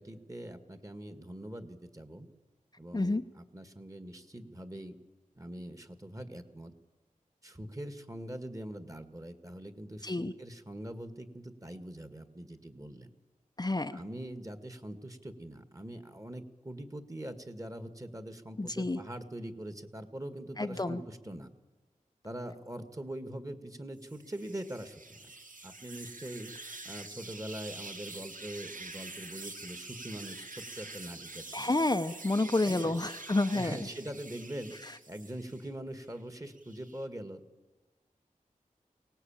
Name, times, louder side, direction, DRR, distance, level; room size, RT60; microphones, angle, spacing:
voice 1, 0.0-2.3 2.8-4.9 5.4-6.7 7.4-13.1 13.9-21.5 22.2-25.3 25.6-26.5 26.8-31.7 32.6-33.0 33.5-34.8 35.1-37.4, right 1 dB, 25° right, 9 dB, 1.8 m, -43 dB
voice 2, 2.9-3.2 10.0-10.3 13.6-14.0 18.6-19.0 20.6-21.0 31.5-33.8 34.8-34.9, left 2 dB, 30° left, 7 dB, 0.7 m, -29 dB
sound 1, 24.0-35.7 36.1-37.1, right 3 dB, 70° right, 1.7 m, -46 dB
23.0 x 18.0 x 8.9 m, 1.2 s
wide cardioid pair, 60°, 14 cm